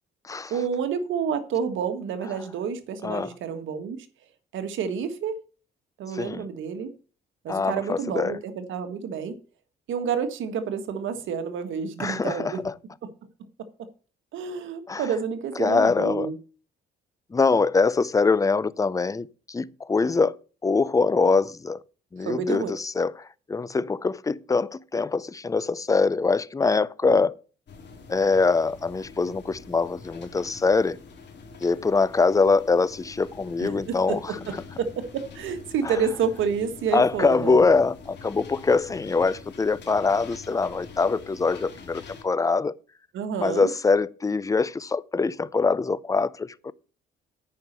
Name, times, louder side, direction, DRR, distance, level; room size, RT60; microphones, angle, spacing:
voice 1, 0.5-4.0 4.5-5.4 6.0-6.9 7.4-9.3 9.9-12.6 13.0-13.1 14.3-16.4 22.2-22.7 27.0-27.2 33.6-34.2 34.8-35.0 35.3-37.6 43.1-43.7, right 6 dB, 80° right, 1.6 m, -29 dB
voice 2, 3.0-3.3 6.1-6.4 7.5-8.4 12.0-12.7 14.9-15.1 15.6-16.3 17.3-20.4 20.6-21.8 22.1-27.3 28.1-31.0 31.6-34.2 35.8-35.9 36.9-42.7 43.4-46.7, left 4 dB, 15° left, 0.5 m, -23 dB
sound 1, 27.7-42.2, left 4 dB, 60° left, 2.6 m, -45 dB
9.3 x 5.7 x 6.7 m
cardioid pair, 90°, 20 cm